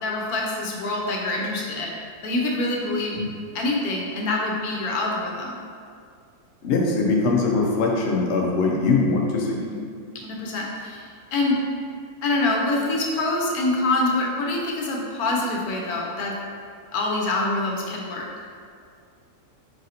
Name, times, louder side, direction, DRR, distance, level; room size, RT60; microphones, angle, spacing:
voice 1, 0.0-1.9 2.2-3.2 3.5-5.6 9.7-9.8 10.1-11.6 12.2-16.3 16.9-18.3, left 2 dB, 80° left, -1 dB, 1.1 m, -25 dB
voice 2, 6.6-9.6, left 3 dB, 60° left, -1 dB, 0.7 m, -22 dB
4.1 x 2.6 x 4.1 m, 2.2 s
omnidirectional pair, 1.6 m